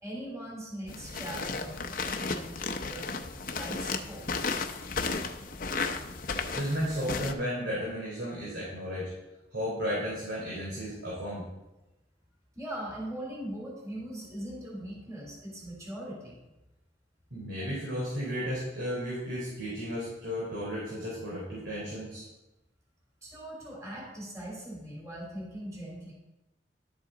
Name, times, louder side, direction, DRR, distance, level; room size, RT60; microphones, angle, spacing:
voice 1, 0.0-3.1 3.5-4.2 12.6-16.4 23.2-26.1, right 1 dB, 20° right, -4 dB, 3.3 m, -40 dB
sound 1, 0.9-7.3, left 4 dB, 50° left, 0.7 m, -34 dB
voice 2, 6.5-9.1 9.5-11.5 17.3-22.2, equal, 85° right, -7 dB, 3.5 m, -34 dB
12.0 x 7.8 x 3.9 m, 1.0 s
head